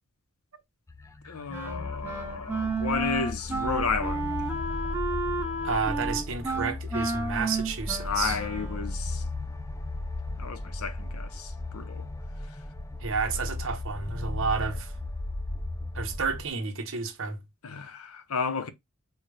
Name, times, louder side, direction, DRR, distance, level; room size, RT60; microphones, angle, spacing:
sound 1, 0.9-16.5, left 2 dB, 15° left, 0.4 m, -36 dB
voice 1, 1.2-4.6 8.0-9.5 10.4-12.1 17.6-18.7, left 5 dB, 80° left, 0.7 m, -32 dB
Wind instrument woodwind instrument, 1.5-9.0, right 2 dB, 10° right, 1.1 m, -32 dB
voice 2, 5.6-8.4 13.0-14.9 15.9-17.4, right 5 dB, 60° right, 1.0 m, -31 dB
4.5 x 2.3 x 4.7 m
head